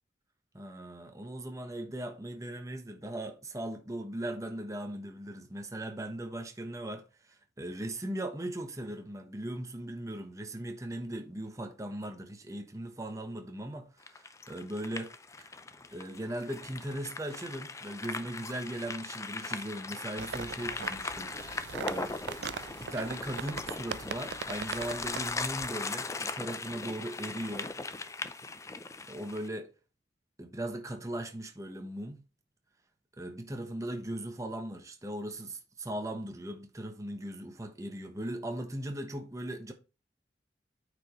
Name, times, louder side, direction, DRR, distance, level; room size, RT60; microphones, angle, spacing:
voice 1, 0.5-15.1 15.4-15.5 15.9-21.3 21.6-22.3 22.8-27.7 29.1-29.7 30.4-32.2 33.2-39.7, right 1 dB, 20° right, 1.0 m, -38 dB
sound 1, 14.0-29.5, left 3 dB, 15° left, 0.5 m, -39 dB
sound 2, 20.2-25.7, right 6 dB, 70° right, 0.4 m, -41 dB
8.9 x 5.1 x 3.1 m
head